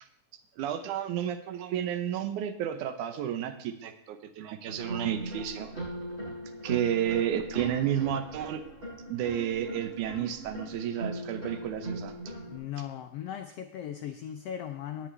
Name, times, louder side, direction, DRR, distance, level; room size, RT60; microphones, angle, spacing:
voice 1, 0.6-5.7 6.6-8.6 9.1-12.2, right 10 dB, 80° right, 8 dB, 2.4 m, -31 dB
sound 1, 4.7-12.6, right 1 dB, 20° right, 6.4 m, -39 dB
voice 2, 12.5-15.1, left 10 dB, 80° left, 7 dB, 1.4 m, -38 dB
17.5 x 8.9 x 3.4 m, 0.71 s
omnidirectional pair, 3.5 m